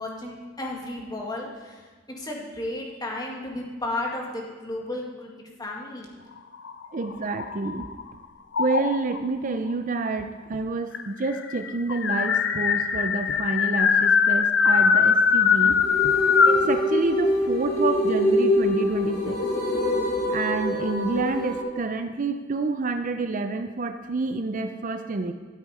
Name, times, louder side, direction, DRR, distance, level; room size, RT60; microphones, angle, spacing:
voice 1, 0.0-1.8 2.2-6.1, left 2 dB, 20° left, -1 dB, 2.0 m, -33 dB
sound 1, 6.5-8.0 8.5-9.2 10.2-10.3 10.5-10.6 10.9-16.7, left 6 dB, 65° left, 0.7 m, -21 dB
voice 2, 6.9-7.9 8.6-15.8 16.4-19.4 20.3-25.3, right 3 dB, 45° right, 8 dB, 0.5 m, -28 dB
sound 2, 15.6-21.6, left 1 dB, 50° left, 2.5 m, -25 dB
13.0 x 8.3 x 4.9 m, 1.4 s
head